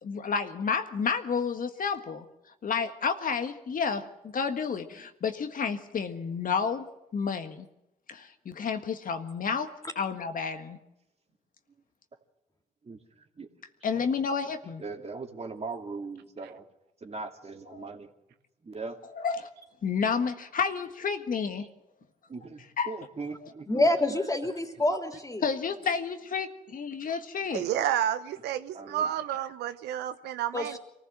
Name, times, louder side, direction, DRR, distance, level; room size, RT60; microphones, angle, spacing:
voice 1, 0.0-2.2 2.6-7.7 8.1-9.7 9.9-10.8 13.8-14.8 17.7-17.8 19.1-19.5 19.8-21.7 22.8-23.0 25.4-27.7, left 6 dB, 55° left, 7 dB, 1.6 m, -30 dB
voice 2, 14.8-16.6 17.0-18.1 18.6-19.0 22.3-23.9 28.7-29.1, right 4 dB, 40° right, 3 dB, 2.7 m, -39 dB
voice 3, 23.7-25.4 30.5-30.8, left 1 dB, 20° left, 4 dB, 3.4 m, -27 dB
voice 4, 27.5-30.8, right 10 dB, 80° right, 11 dB, 0.9 m, -30 dB
23.5 x 15.5 x 7.5 m, 0.90 s
supercardioid pair, 55°, 17 cm